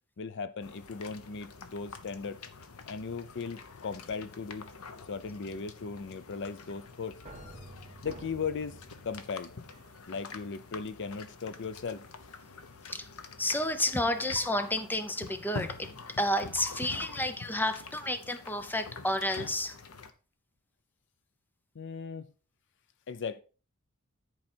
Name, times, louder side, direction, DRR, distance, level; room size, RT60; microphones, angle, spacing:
voice 1, 0.2-2.4 2.9-4.7 5.1-7.2 8.0-9.5 10.1-12.1 21.7-22.3 23.1-23.4, left 5 dB, 55° left, 0.5 m, -37 dB
sound 1, 0.6-20.1, left 4 dB, 80° left, 0.9 m, -46 dB
sound 2, 6.9-10.5 11.1-11.7 12.1-12.5 14.0-17.4, right 1 dB, 30° right, 1.3 m, -53 dB
voice 2, 13.4-15.9 16.2-19.8, left 1 dB, 10° left, 0.7 m, -31 dB
10.5 x 4.8 x 4.3 m
head